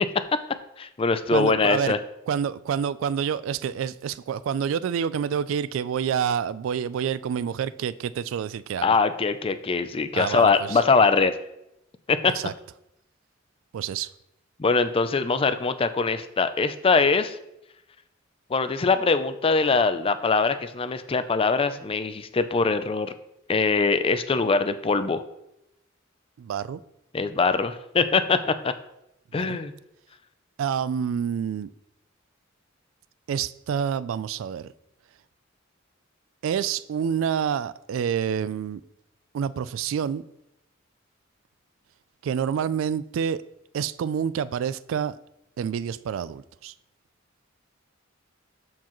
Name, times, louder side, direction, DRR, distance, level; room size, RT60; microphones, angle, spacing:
voice 1, 0.8-2.0 8.8-11.3 12.1-12.3 14.6-17.4 18.5-23.1 23.5-25.2 27.1-28.7 29.3-29.7, left 4 dB, 30° left, 0.4 m, -22 dB
voice 2, 1.3-1.9 2.3-9.0 10.1-10.8 12.3-12.5 13.7-14.1 26.4-26.8 29.3-29.6 30.6-31.7 33.3-34.7 36.4-38.8 39.3-40.2 42.2-43.4 43.7-45.1 45.6-46.7, right 8 dB, 75° right, 0.3 m, -28 dB
13.0 x 4.6 x 3.0 m
head